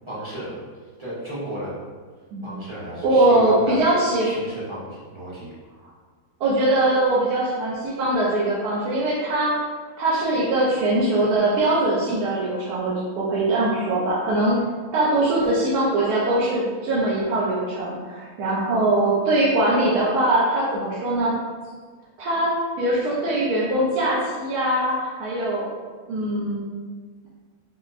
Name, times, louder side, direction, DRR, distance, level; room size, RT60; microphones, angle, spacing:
voice 1, 0.1-0.6 1.0-1.8 2.4-3.8 4.2-5.5, equal, 25° right, -10 dB, 0.6 m, -34 dB
voice 2, 3.0-4.3 6.4-9.6 10.0-14.6 14.9-21.4 22.2-22.5 22.8-25.7 26.1-26.7, right 1 dB, 75° right, -8 dB, 1.1 m, -21 dB
4.3 x 2.0 x 2.4 m, 1.5 s
omnidirectional pair, 1.7 m